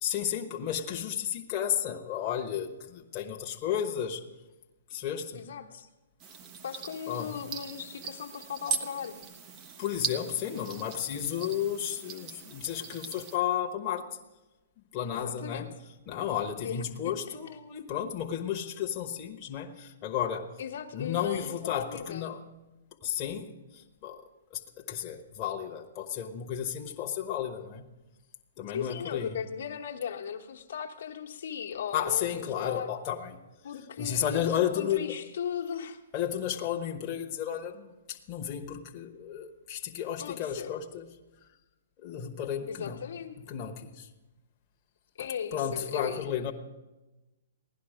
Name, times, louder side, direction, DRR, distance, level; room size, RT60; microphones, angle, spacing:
voice 1, 0.0-4.2 4.9-5.5 7.1-7.3 9.8-14.1 14.9-15.7 16.1-20.5 20.9-22.4 23.0-24.2 24.5-27.8 28.6-29.3 31.9-33.4 34.0-35.1 36.1-41.1 41.4-41.5 42.0-43.0 43.5-44.1 45.2-46.5, left 9 dB, 30° left, 0 dB, 1.1 m, -33 dB
voice 2, 5.3-5.9 6.6-9.1 15.1-15.7 16.6-16.8 17.3-17.4 20.6-22.4 28.7-32.9 33.6-36.0 40.2-40.8 42.7-43.4 45.2-46.2, left 8 dB, 65° left, 0 dB, 1.2 m, -37 dB
sound 1, 6.2-13.4, right 6 dB, 30° right, 1.0 m, -39 dB
16.5 x 11.5 x 5.0 m, 1.1 s
hypercardioid pair, 130°, 0 cm